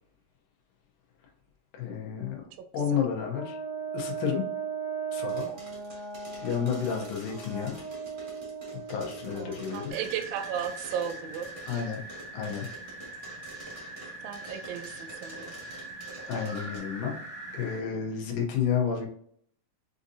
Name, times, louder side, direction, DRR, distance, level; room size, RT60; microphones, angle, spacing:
voice 1, 1.7-2.4 2.7-3.6 3.9-4.4 5.1-5.5 6.4-7.8 8.9-9.9 11.7-12.0 12.3-12.7 16.3-17.2 17.5-19.1, left 7 dB, 90° left, 0 dB, 2.4 m, -30 dB
voice 2, 2.5-3.1 9.3-11.9 14.2-15.6 17.9-18.3, right 9 dB, 85° right, 7 dB, 1.5 m, -36 dB
Brass instrument, 3.3-10.0, right 6 dB, 65° left, 2.0 m, -37 dB
sound 1, 5.3-16.8, right 1 dB, 50° right, 0.6 m, -47 dB
sound 2, 9.9-17.8, right 2 dB, 15° left, 0.3 m, -42 dB
6.4 x 2.6 x 2.6 m, 0.64 s
omnidirectional pair, 3.6 m